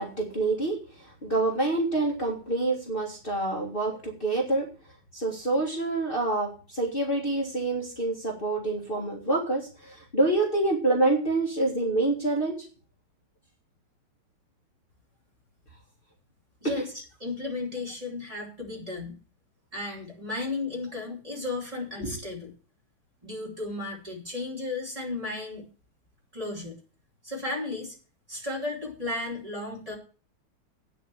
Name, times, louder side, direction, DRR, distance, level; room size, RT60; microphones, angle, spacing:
voice 1, 0.0-4.7 5.1-12.7 22.0-22.1, right 2 dB, 30° left, -3 dB, 2.1 m, -27 dB
voice 2, 16.6-16.9 17.2-19.1 19.7-22.5 23.2-25.6 26.3-26.8 27.2-28.0 28.3-30.0, left 2 dB, 20° right, -2 dB, 3.4 m, -34 dB
9.1 x 6.5 x 7.9 m, 0.38 s
omnidirectional pair, 1.9 m